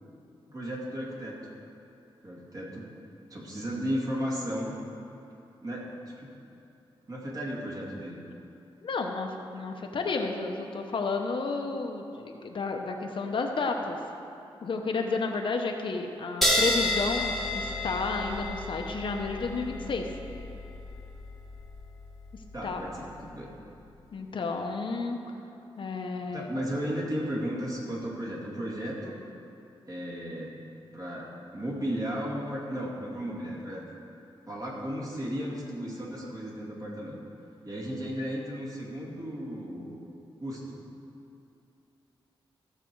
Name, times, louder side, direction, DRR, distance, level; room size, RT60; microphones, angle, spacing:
voice 1, 0.5-1.4 2.2-2.9 3.3-4.7 5.6-6.3 7.1-8.2 22.5-23.5 26.3-29.2 29.9-30.6 30.9-33.8 34.5-37.2 37.6-40.0 40.4-40.8, equal, 40° right, -4 dB, 2.4 m, -34 dB
voice 2, 8.8-14.0 14.6-20.1 22.6-22.8 24.1-25.2 25.8-26.5, left 4 dB, 60° left, 3 dB, 0.9 m, -31 dB
sound 1, 16.4-23.4, left 1 dB, ahead, 1.4 m, -31 dB
15.0 x 6.8 x 4.7 m, 2.8 s
wide cardioid pair, 110°, 10 cm